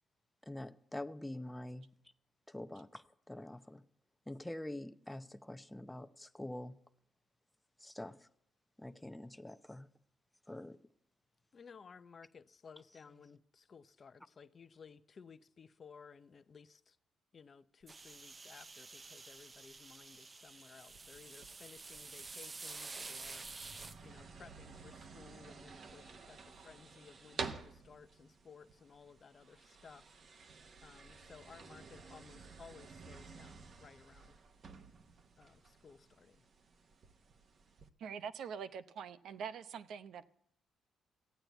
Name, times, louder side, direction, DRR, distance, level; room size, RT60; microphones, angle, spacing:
voice 1, 0.5-1.9 2.5-3.8 4.3-6.8 7.8-8.3 8.8-9.9 10.5-10.8, left 1 dB, 10° left, 0.7 m, -45 dB
voice 2, 11.5-17.0 17.3-30.3 30.8-34.4 35.4-36.5, left 5 dB, 40° left, 0.7 m, -58 dB
sound 1, 17.9-24.0, right 3 dB, 30° right, 0.6 m, -49 dB
sound 2, 20.9-37.9, right 4 dB, 50° right, 1.1 m, -52 dB
voice 3, 38.0-40.2, right 7 dB, 70° right, 0.7 m, -44 dB
14.0 x 9.0 x 8.0 m
cardioid pair, 90°, 0 cm